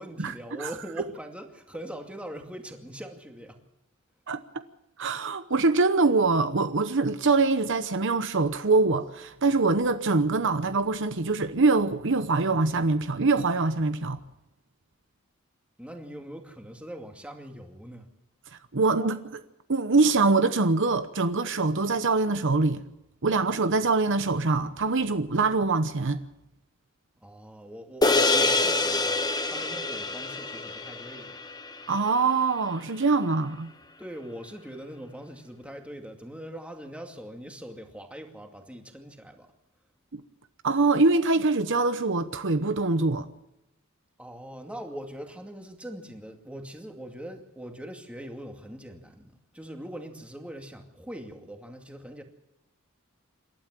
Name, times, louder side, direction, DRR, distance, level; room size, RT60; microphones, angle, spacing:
voice 1, 0.0-3.6 15.8-18.1 27.2-31.4 34.0-39.5 44.2-52.2, equal, 5° right, 2.4 m, -41 dB
voice 2, 4.3-4.6 5.0-14.2 18.7-19.4 19.7-22.8 23.2-26.2 31.9-33.7 40.1-40.2 40.6-43.3, right 3 dB, 60° right, 1.0 m, -24 dB
sound 1, 28.0-32.6, left 3 dB, 20° left, 1.3 m, -26 dB
27.5 x 12.5 x 7.6 m
head